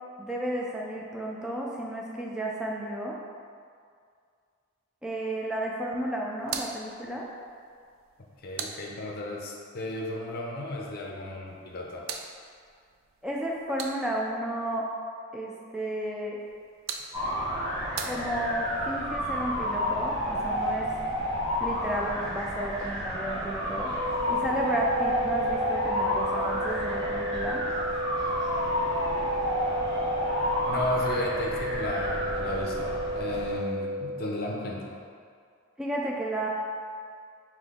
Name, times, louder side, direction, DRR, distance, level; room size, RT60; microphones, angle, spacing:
voice 1, 0.2-3.2 5.0-7.3 13.2-14.9 15.3-16.4 18.0-20.9 21.6-27.6 35.8-36.5, right 1 dB, 5° right, -3 dB, 0.3 m, -32 dB
sound 1, 6.4-9.5 11.5-14.4 16.4-18.8, right 6 dB, 85° right, 0.3 m, -42 dB
voice 2, 8.4-12.0 30.6-35.0, left 1 dB, 50° left, -1 dB, 0.5 m, -34 dB
sound 2, 17.1-33.6, equal, 20° right, 1.1 m, -30 dB
sound 3, 24.0-34.0, equal, 35° right, 0.8 m, -33 dB
3.8 x 2.9 x 3.5 m, 2.2 s
head